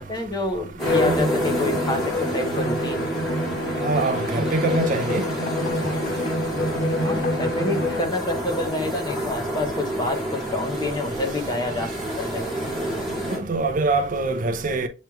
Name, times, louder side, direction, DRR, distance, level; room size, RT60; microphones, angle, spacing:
voice 1, 0.0-3.0 7.0-11.9 12.2-12.4, left 2 dB, 20° left, 0.8 m, -28 dB
Bowed string instrument, 0.8-8.2, left 1 dB, 65° left, 1.4 m, -26 dB
sound 1, 0.8-13.4, right 1 dB, ahead, 1.7 m, -30 dB
voice 2, 3.8-5.3 13.3-14.9, right 3 dB, 45° right, 0.4 m, -24 dB
sound 2, 4.9-9.9, left 4 dB, 35° left, 0.3 m, -40 dB
7.4 x 3.1 x 2.3 m
head